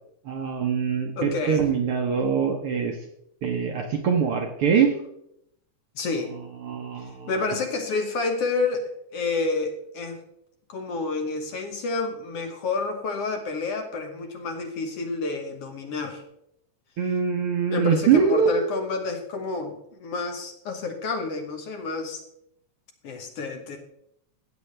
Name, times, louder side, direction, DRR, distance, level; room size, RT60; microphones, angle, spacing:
voice 1, 0.3-3.0 3.4-4.9 6.6-7.3 17.0-18.7, right 6 dB, 65° right, 3 dB, 1.5 m, -23 dB
voice 2, 1.2-1.7 6.0-6.3 7.3-10.2 10.7-16.2 17.7-22.2 23.0-23.8, left 3 dB, 60° left, 5 dB, 1.9 m, -29 dB
15.5 x 8.3 x 3.3 m, 0.75 s
omnidirectional pair, 3.4 m